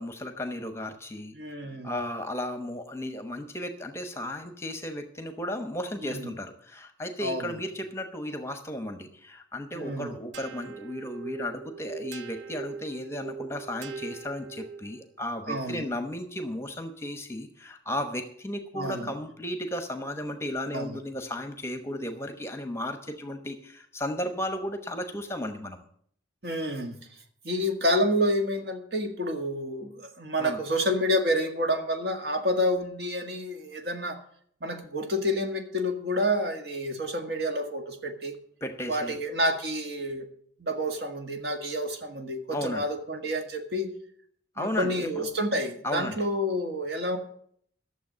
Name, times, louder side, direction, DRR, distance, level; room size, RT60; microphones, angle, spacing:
voice 1, 0.0-1.3 1.8-25.8 30.4-30.6 38.6-39.2 42.5-42.9 44.6-45.2 45.8-46.2, left 1 dB, 15° left, 7 dB, 0.9 m, -34 dB
voice 2, 1.3-1.9 6.0-6.3 7.2-7.5 9.7-10.1 15.5-15.8 18.7-19.1 20.7-21.0 26.4-27.0 27.4-34.2 34.6-38.3 38.9-40.3 40.6-43.9 44.6-47.2, equal, 55° right, 4 dB, 1.8 m, -29 dB
sound 1, 10.3-15.1, right 5 dB, 70° right, 0.6 m, -41 dB
12.5 x 7.1 x 7.4 m, 0.62 s
head